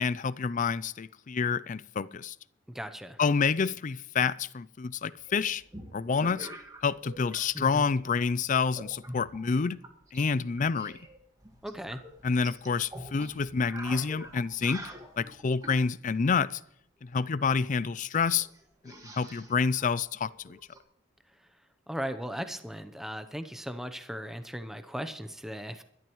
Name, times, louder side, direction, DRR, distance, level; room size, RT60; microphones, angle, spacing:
voice 1, 0.0-2.4 3.2-5.6 5.9-6.5 6.8-9.8 10.1-11.0 12.2-14.9 15.2-16.6 17.1-18.5 18.8-20.6, left 5 dB, 40° left, 0.4 m, -28 dB
voice 2, 2.7-3.2 7.5-7.9 11.6-12.0 21.9-25.8, equal, ahead, 0.7 m, -37 dB
sound 1, 5.3-7.4 7.7-8.2 8.7-10.3 10.6-15.8 17.5-17.6 17.8-17.9 18.3-20.8, right 1 dB, 20° right, 1.7 m, -46 dB
22.0 x 12.0 x 3.1 m
head